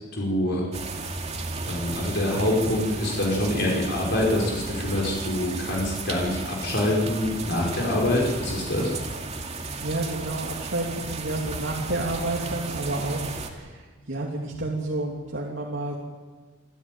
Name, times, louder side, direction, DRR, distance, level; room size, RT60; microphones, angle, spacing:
voice 1, 0.1-0.6 1.6-8.9, left 1 dB, 60° left, -2 dB, 5.1 m, -25 dB
sound 1, 0.7-13.5, right 3 dB, 35° right, 2.5 m, -34 dB
voice 2, 9.4-15.9, right 2 dB, 70° right, -2 dB, 3.0 m, -30 dB
26.0 x 14.5 x 9.3 m, 1.4 s
head